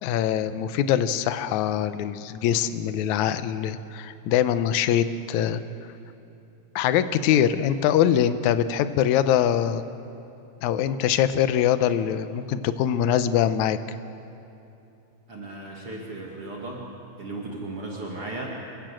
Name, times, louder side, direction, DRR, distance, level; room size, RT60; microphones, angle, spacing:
voice 1, 0.0-5.6 6.8-9.8 10.6-13.8, left 10 dB, 75° left, 11 dB, 2.1 m, -23 dB
voice 2, 15.3-16.9 17.2-18.5, right 2 dB, 50° right, -2 dB, 2.8 m, -35 dB
27.0 x 16.5 x 7.6 m, 2.8 s
omnidirectional pair, 3.6 m